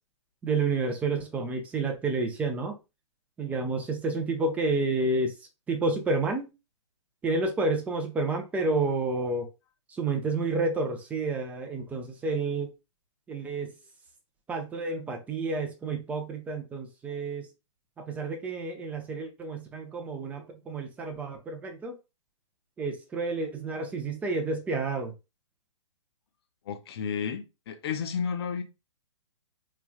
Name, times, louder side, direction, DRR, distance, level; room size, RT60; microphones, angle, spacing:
voice 1, 0.4-2.8 3.4-5.3 5.7-6.5 7.2-9.5 9.9-12.7 13.3-13.7 14.5-17.5 18.0-22.0 22.8-25.1, right 3 dB, 10° right, 0.4 m, -30 dB
voice 2, 26.7-28.6, left 6 dB, 50° left, 0.6 m, -32 dB
3.2 x 2.3 x 2.2 m
hypercardioid pair, 125°, 16 cm